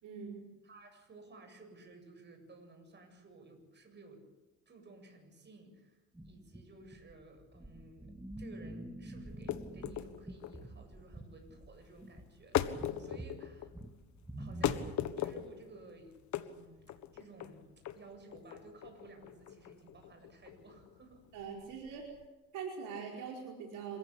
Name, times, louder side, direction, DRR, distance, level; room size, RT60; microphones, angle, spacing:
voice 1, 0.0-0.5 21.3-22.0 22.5-24.0, right 6 dB, 70° right, 0 dB, 4.8 m, -42 dB
voice 2, 0.6-4.3 4.7-13.7 14.4-21.3, right 2 dB, 35° right, 4 dB, 7.9 m, -55 dB
sound 1, 6.1-15.3, right 1 dB, 5° right, 1.7 m, -47 dB
sound 2, 9.3-22.3, left 11 dB, 60° left, 1.5 m, -39 dB
27.5 x 16.0 x 8.5 m, 1.1 s
cardioid pair, 95°, 32 cm